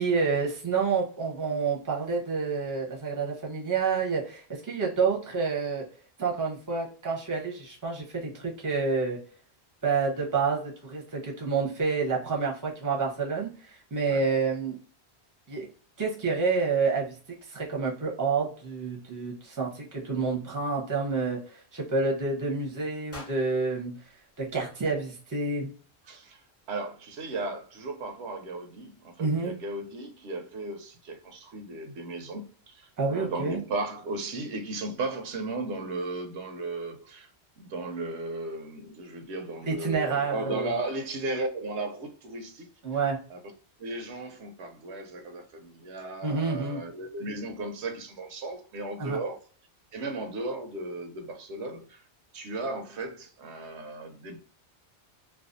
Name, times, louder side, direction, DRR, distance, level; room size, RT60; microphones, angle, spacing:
voice 1, 0.0-5.8 6.2-9.2 9.8-14.8 15.5-15.7 16.0-17.2 17.4-24.0 24.4-25.7 29.2-29.5 33.0-33.6 39.7-40.7 42.8-43.2 46.2-46.8 49.0-49.2, right 4 dB, 20° right, 0.6 m, -28 dB
sound 1, 23.1-25.2, left 1 dB, 15° left, 0.7 m, -49 dB
voice 2, 26.1-26.4 26.7-37.3 37.6-42.7 43.3-43.4 43.8-49.4 49.9-52.0 52.3-54.4, right 2 dB, 85° right, 0.9 m, -35 dB
2.4 x 2.3 x 2.4 m
omnidirectional pair, 1.1 m